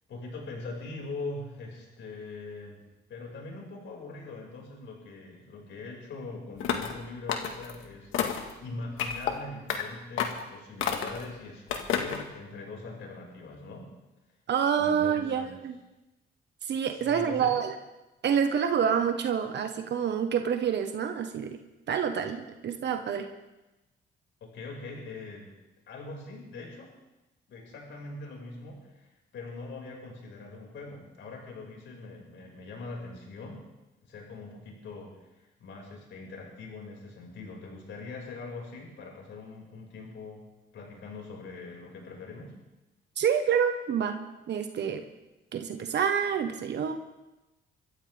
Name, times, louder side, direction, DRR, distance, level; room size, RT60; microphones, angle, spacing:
voice 1, 0.1-2.8 3.1-13.9 14.8-15.6 16.9-17.5 24.4-25.5 25.9-26.9 27.5-33.6 34.0-40.4 40.7-42.5, left 3 dB, 70° left, -1 dB, 5.8 m, -42 dB
sound 1, 6.6-7.0 7.3-7.7 8.1-8.5 9.0-9.3 9.7-9.8 10.2-10.4 10.8-11.2 11.7-12.2, left 8 dB, 85° left, 1.8 m, -30 dB
voice 2, 14.5-15.8 16.6-17.7 18.2-21.6 21.9-23.3 43.2-44.2 44.5-45.0 45.5-46.9, right 7 dB, 60° right, 6 dB, 1.4 m, -27 dB
25.5 x 14.0 x 3.6 m, 1.0 s
cardioid pair, 90°, 20 cm